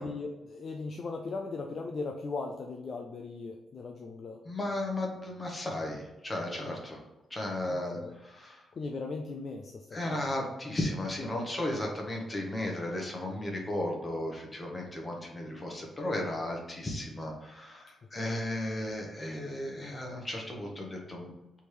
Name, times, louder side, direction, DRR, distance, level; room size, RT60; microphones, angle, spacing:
voice 1, 0.0-4.4 7.7-8.1 8.8-10.3, left 3 dB, 40° left, 1 dB, 0.4 m, -38 dB
voice 2, 4.4-7.0 7.3-8.7 9.9-21.3, left 1 dB, 20° left, 0 dB, 0.9 m, -35 dB
3.5 x 3.2 x 4.5 m, 1.0 s
wide cardioid pair, 165°, 0 cm